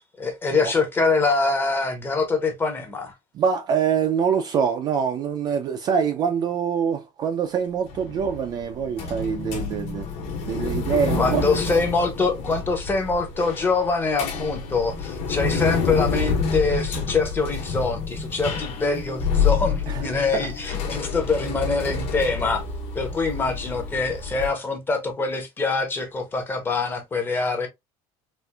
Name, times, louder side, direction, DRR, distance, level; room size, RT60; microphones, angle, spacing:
voice 1, 0.2-3.1 11.2-22.6 22.9-27.7, left 3 dB, 15° left, 0.7 m, -24 dB
voice 2, 3.3-10.1 10.4-11.4 19.9-20.1 20.3-20.5 20.9-21.0, right 7 dB, 30° right, 0.3 m, -24 dB
sound 1, 7.9-24.5, left 5 dB, 45° left, 1.2 m, -28 dB
4.2 x 2.5 x 2.3 m
cardioid pair, 175°, 14 cm